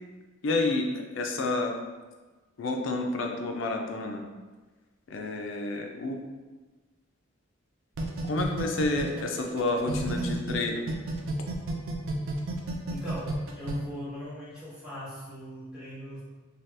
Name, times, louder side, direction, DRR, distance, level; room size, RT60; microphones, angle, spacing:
voice 1, 0.4-1.7 2.6-4.2 5.1-6.2 8.3-10.8, left 2 dB, 75° left, 2 dB, 0.4 m, -29 dB
sound 1, 8.0-10.5 10.9-13.7, right 2 dB, 80° right, 0.4 m, -32 dB
voice 2, 12.9-16.2, equal, 5° right, -12 dB, 1.2 m, -40 dB
2.8 x 2.3 x 3.2 m, 1.3 s
head